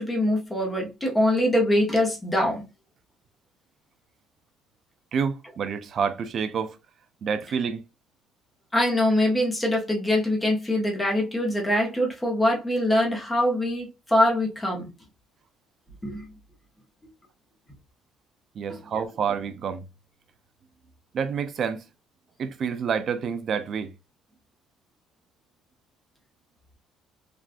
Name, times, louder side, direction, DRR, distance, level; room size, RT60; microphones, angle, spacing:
voice 1, 0.0-2.6 8.7-14.9 16.0-16.3, left 1 dB, 10° left, 0.8 m, -23 dB
voice 2, 5.1-6.8 7.2-7.8 18.6-19.8 21.1-21.9 22.4-23.9, right 6 dB, 35° right, 0.3 m, -28 dB
3.5 x 2.3 x 2.4 m
cardioid pair, 170°, 0 cm